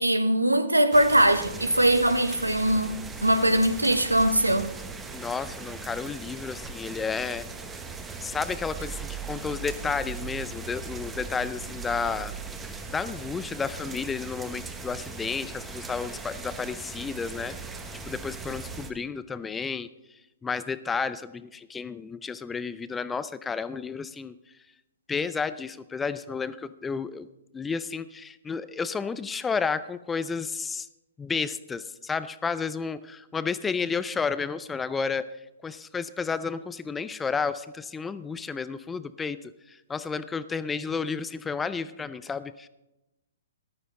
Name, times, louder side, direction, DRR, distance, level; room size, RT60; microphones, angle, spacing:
voice 1, 0.0-4.7, right 1 dB, 90° right, 0.9 m, -21 dB
sound 1, 0.9-18.9, right 4 dB, 10° right, 1.1 m, -39 dB
voice 2, 5.1-7.5 8.2-12.3 12.9-17.6 18.1-19.9 20.4-24.4 25.1-27.3 27.5-30.9 31.2-35.4 35.6-42.7, left 5 dB, 10° left, 0.5 m, -31 dB
14.5 x 12.0 x 3.8 m
figure-of-eight pair, 120°, 0 cm